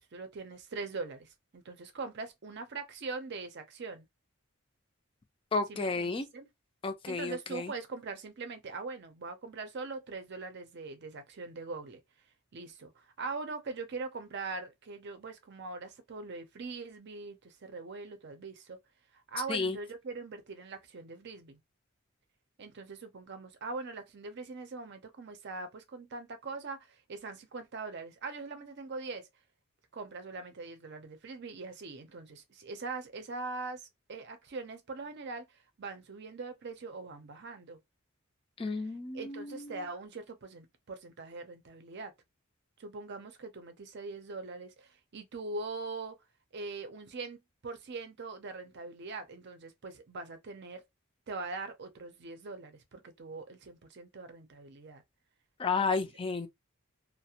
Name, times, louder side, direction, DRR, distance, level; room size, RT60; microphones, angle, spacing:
voice 1, 0.0-4.1 5.7-6.5 7.1-12.0 12.5-18.8 19.3-21.6 22.6-29.3 29.9-33.8 34.1-35.5 35.8-37.8 39.1-42.1 42.8-46.2 46.5-50.8 51.3-55.0 55.8-56.0, right 3 dB, 50° right, 0.5 m, -42 dB
voice 2, 5.5-6.3 6.8-7.7 19.5-19.8 38.6-39.8 55.6-56.5, left 4 dB, 25° left, 0.3 m, -32 dB
2.4 x 2.0 x 2.7 m
head